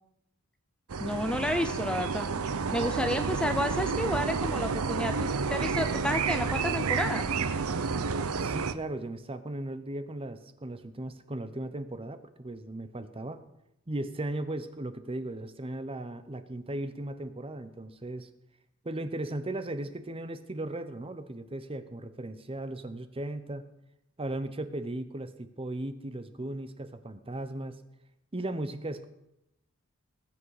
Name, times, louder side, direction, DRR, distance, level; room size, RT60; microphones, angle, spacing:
sound 1, 0.9-8.7, right 5 dB, 85° right, 0.7 m, -30 dB
voice 1, 1.0-2.3 2.7-7.3, left 1 dB, 5° left, 8 dB, 0.5 m, -31 dB
voice 2, 8.4-13.4 13.9-18.3 18.8-23.6 24.2-27.7 28.3-29.1, right 1 dB, 25° right, 10 dB, 0.9 m, -37 dB
20.0 x 7.6 x 4.9 m, 0.83 s
head